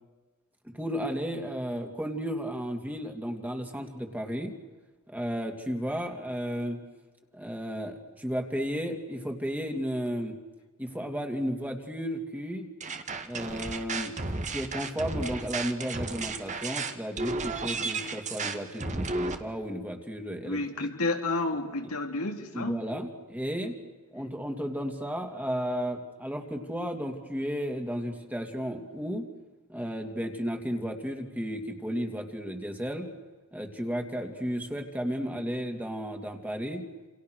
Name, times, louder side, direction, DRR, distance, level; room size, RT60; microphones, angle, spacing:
voice 1, 0.6-4.5 5.1-6.8 7.3-10.4 10.8-12.7 13.2-14.1 14.5-20.9 22.5-23.8 24.1-29.3 29.7-33.1 33.5-36.8, equal, 10° right, 3 dB, 2.9 m, -33 dB
sound 1, 12.8-19.4, right 3 dB, 35° right, 2.0 m, -33 dB
voice 2, 20.4-22.8, left 2 dB, 80° left, 3 dB, 3.4 m, -31 dB
29.5 x 29.0 x 6.6 m, 1.3 s
head